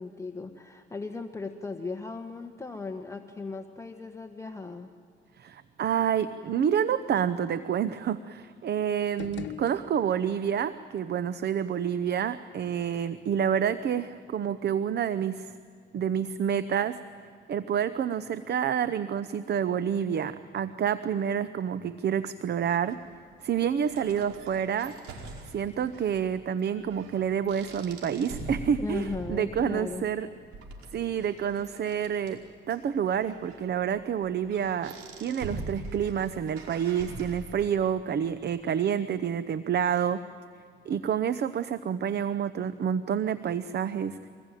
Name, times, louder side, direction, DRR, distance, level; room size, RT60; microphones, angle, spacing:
voice 1, 0.0-4.9 28.8-30.0, left 3 dB, 15° left, 4 dB, 1.4 m, -37 dB
voice 2, 5.4-15.6 15.9-17.0 17.5-23.0 23.4-25.0 25.4-30.3 30.9-32.4 32.7-40.2 40.9-44.3, right 8 dB, 55° right, 13 dB, 0.9 m, -28 dB
sound 1, 9.0-10.4, left 9 dB, 65° left, 1.2 m, -42 dB
sound 2, 22.9-37.9, right 2 dB, 90° right, 5.0 m, -44 dB
25.5 x 21.0 x 9.1 m, 2.4 s
cardioid pair, 90°, 20 cm